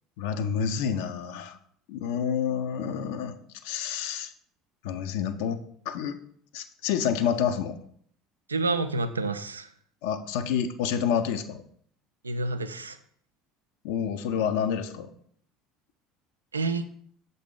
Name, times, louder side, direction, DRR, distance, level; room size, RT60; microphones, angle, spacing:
voice 1, 0.2-1.6 1.9-3.4 3.6-4.3 4.8-5.6 5.9-6.2 6.5-7.8 10.0-11.6 13.8-15.1, left 8 dB, 60° left, 9 dB, 0.5 m, -28 dB
voice 2, 8.5-9.7 12.2-13.0 16.5-16.8, right 3 dB, 80° right, 10 dB, 0.3 m, -28 dB
6.5 x 4.0 x 3.7 m, 0.62 s
figure-of-eight pair, 65°, 0 cm